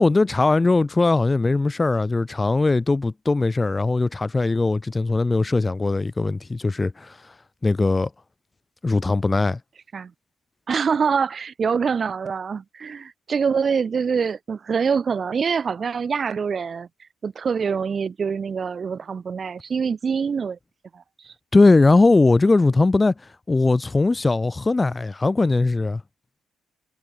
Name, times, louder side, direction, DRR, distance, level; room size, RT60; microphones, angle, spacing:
voice 1, 0.0-7.2 7.6-8.1 8.8-9.6 21.5-23.1 23.5-26.0, left 3 dB, 25° left, 2.9 m, -19 dB
voice 2, 10.7-16.9 17.2-20.6 20.9-21.3, right 6 dB, 40° right, 5.7 m, -25 dB
figure-of-eight pair, 45°, 0 cm